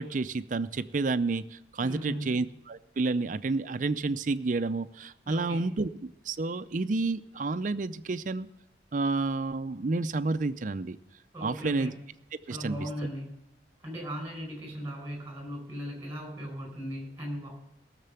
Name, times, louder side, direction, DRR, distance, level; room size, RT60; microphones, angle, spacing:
voice 1, 0.0-5.9 6.3-8.5 8.9-11.0 11.4-11.9 12.5-12.8, right 3 dB, 45° right, 13 dB, 0.5 m, -30 dB
voice 2, 1.8-2.3 5.2-5.6 11.3-11.9 12.5-13.4 13.8-17.5, equal, 15° right, 2 dB, 4.7 m, -37 dB
17.5 x 6.7 x 6.9 m, 0.87 s
head